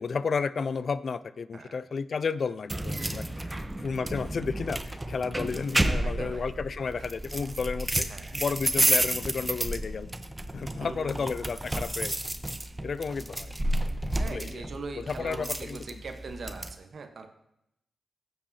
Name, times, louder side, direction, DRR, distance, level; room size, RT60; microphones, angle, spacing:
voice 1, 0.0-3.5 3.8-8.1 8.3-10.1 10.5-12.2 12.8-13.5 13.9-14.6 15.0-15.8, left 5 dB, 60° left, 16 dB, 0.3 m, -32 dB
voice 2, 1.5-1.8 3.5-3.6 6.0-6.6 7.0-7.1 8.1-8.4 10.8-11.3 14.1-17.3, right 4 dB, 65° right, 6 dB, 0.9 m, -41 dB
sound 1, 2.7-16.7, right 1 dB, 20° right, 0.8 m, -31 dB
15.5 x 7.1 x 2.7 m, 0.82 s
supercardioid pair, 40°, 0 cm